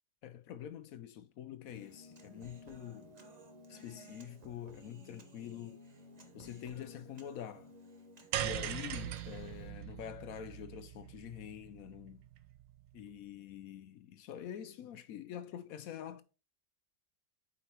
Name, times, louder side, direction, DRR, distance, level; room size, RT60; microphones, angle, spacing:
voice 1, 0.2-3.2 3.7-5.8 6.3-7.7 8.4-12.2 12.9-16.2, left 10 dB, 70° left, 0.8 m, -46 dB
Human voice, 1.7-9.7, equal, 30° right, 0.8 m, -55 dB
sound 1, 8.3-12.7, right 11 dB, 85° right, 1.4 m, -40 dB
8.3 x 5.2 x 2.9 m
omnidirectional pair, 1.9 m